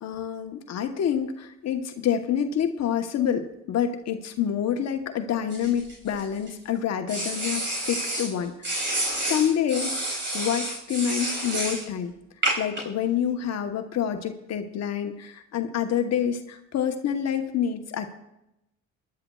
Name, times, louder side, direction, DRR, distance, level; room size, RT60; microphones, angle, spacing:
voice 1, 0.0-12.1 12.6-18.1, left 9 dB, 60° left, 6 dB, 1.1 m, -27 dB
sound 1, 5.5-6.5 7.1-8.3 8.6-11.8 12.4-12.8, right 1 dB, 40° right, 4.9 m, -29 dB
21.0 x 11.5 x 2.3 m, 0.87 s
cardioid pair, 85°, 29 cm